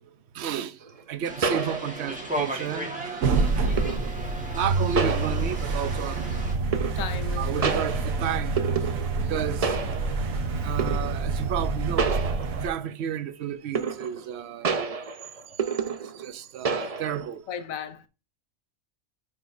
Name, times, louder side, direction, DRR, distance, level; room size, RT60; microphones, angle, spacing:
voice 1, 0.3-0.8 1.1-3.8 4.5-6.9 7.4-8.7 9.3-9.8 10.6-12.3 12.6-15.1 16.1-17.4, right 9 dB, 60° right, 0.9 m, -32 dB
sound 1, 0.8-0.9 1.4-2.3 3.8-4.2 5.0-5.8 6.7-7.3 7.6-9.3 9.6-10.3 10.8-11.2 12.0-12.9 13.7-14.3 14.6-16.3 16.6-17.3, right 5 dB, 40° right, 0.5 m, -29 dB
sound 2, 1.2-6.5, right 1 dB, 5° right, 1.4 m, -36 dB
sound 3, 3.2-12.7, right 3 dB, 85° right, 1.4 m, -27 dB
voice 2, 3.6-4.0 6.9-7.8 9.2-9.5 10.6-10.8 17.5-18.1, left 7 dB, 85° left, 1.2 m, -37 dB
9.3 x 5.1 x 2.6 m
omnidirectional pair, 1.4 m